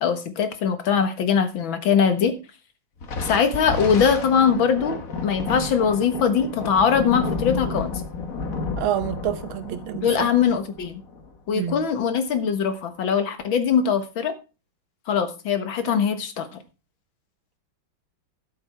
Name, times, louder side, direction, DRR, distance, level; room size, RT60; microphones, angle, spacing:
voice 1, 0.0-2.3 3.2-8.0 10.0-11.0 11.5-14.3 15.1-16.6, left 7 dB, 75° left, 2.1 m, -22 dB
Thunder, 3.0-11.8, left 4 dB, 45° left, 1.6 m, -31 dB
voice 2, 8.8-10.3 11.5-11.8, right 11 dB, 80° right, 1.7 m, -28 dB
12.0 x 7.6 x 4.4 m
omnidirectional pair, 2.2 m